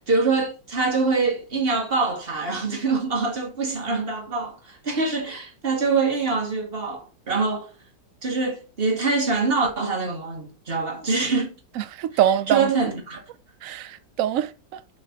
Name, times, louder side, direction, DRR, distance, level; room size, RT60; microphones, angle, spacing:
voice 1, 0.0-7.7 8.2-11.6 12.5-13.2, right 4 dB, 30° right, 1.9 m, -24 dB
voice 2, 11.8-12.7 13.6-14.8, right 10 dB, 90° right, 0.7 m, -24 dB
6.7 x 3.9 x 5.8 m
omnidirectional pair, 2.0 m